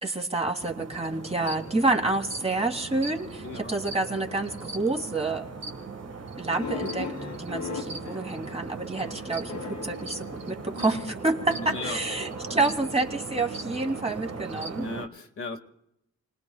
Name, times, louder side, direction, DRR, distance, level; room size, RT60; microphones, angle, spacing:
voice 1, 0.0-5.4 6.4-7.1 7.4-14.8, right 2 dB, 20° right, 3 dB, 2.0 m, -28 dB
sound 1, 0.6-15.1, right 4 dB, 60° right, 1.6 m, -39 dB
voice 2, 3.4-3.7 10.7-11.1 11.5-12.0 12.5-12.7 14.7-15.6, left 2 dB, 50° left, 3 dB, 1.7 m, -37 dB
sound 2, 6.5-11.0 11.8-13.3, left 5 dB, 80° left, 2.4 m, -39 dB
29.0 x 19.5 x 2.3 m, 0.81 s
cardioid pair, 90°, 29 cm